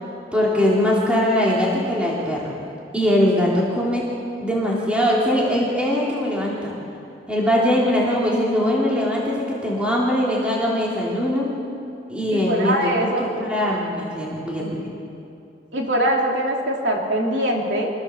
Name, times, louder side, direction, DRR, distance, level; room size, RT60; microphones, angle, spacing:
voice 1, 0.3-2.6 2.9-4.1 4.4-6.8 7.3-11.5 12.1-14.9, left 1 dB, 5° right, -5 dB, 3.2 m, -21 dB
voice 2, 12.3-13.3 14.6-14.8 15.7-17.9, right 1 dB, 75° right, -1 dB, 3.1 m, -23 dB
25.5 x 15.5 x 7.2 m, 2.6 s
head